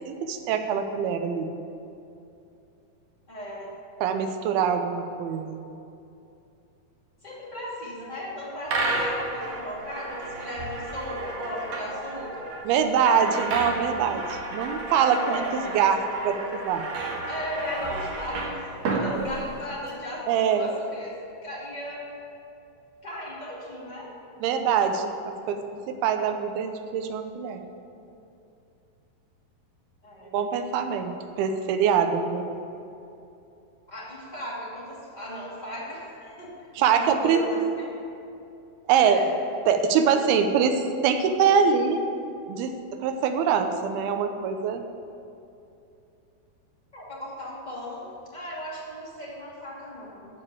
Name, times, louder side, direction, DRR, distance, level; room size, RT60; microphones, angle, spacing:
voice 1, 0.1-1.5 4.0-5.6 12.7-15.4 15.7-16.9 20.3-20.7 24.4-25.1 25.5-27.6 30.3-32.5 36.8-37.4 38.9-39.2 39.7-42.0 42.5-42.7 43.0-44.8, right 7 dB, 85° right, 7 dB, 2.7 m, -24 dB
voice 2, 3.3-3.7 7.2-12.5 15.1-15.9 17.3-21.1 21.4-22.0 23.0-24.1 30.0-30.3 33.9-36.5 36.8-37.9 38.9-39.3 46.9-50.3, left 1 dB, 15° left, -6 dB, 2.1 m, -36 dB
sound 1, 8.7-19.9, right 3 dB, 60° right, 2.2 m, -32 dB
14.5 x 5.1 x 8.6 m, 2.7 s
omnidirectional pair, 4.3 m